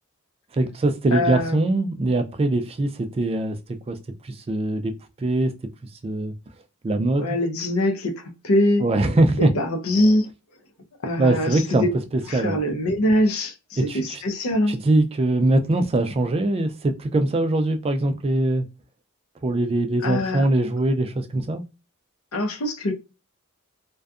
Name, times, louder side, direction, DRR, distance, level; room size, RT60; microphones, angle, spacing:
voice 1, 0.5-3.6 3.9-4.0 4.2-4.9 5.2-5.5 6.0-6.3 6.8-7.3 8.8-9.5 11.2-11.9 12.3-12.6 13.8-14.2 14.7-18.7 19.4-21.6, right 2 dB, 25° right, 0.3 m, -22 dB
voice 2, 1.1-1.7 7.2-8.8 9.4-10.3 11.0-11.9 12.3-14.7 20.0-20.5 22.3-22.9, left 1 dB, 70° left, 0.6 m, -23 dB
2.6 x 2.3 x 2.3 m
head